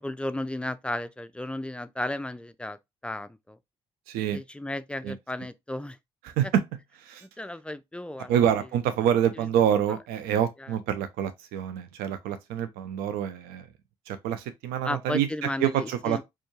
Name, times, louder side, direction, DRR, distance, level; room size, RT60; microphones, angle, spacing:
voice 1, 0.0-2.8 3.0-3.6 4.3-6.0 6.4-6.5 7.2-8.3 10.6-10.7 14.8-16.2, left 1 dB, 5° left, 0.4 m, -34 dB
voice 2, 4.1-4.4 5.0-5.2 6.2-6.6 7.0-7.3 8.3-13.7 14.1-16.2, right 9 dB, 65° right, 0.4 m, -27 dB
4.3 x 2.3 x 2.9 m
figure-of-eight pair, 45°, 17 cm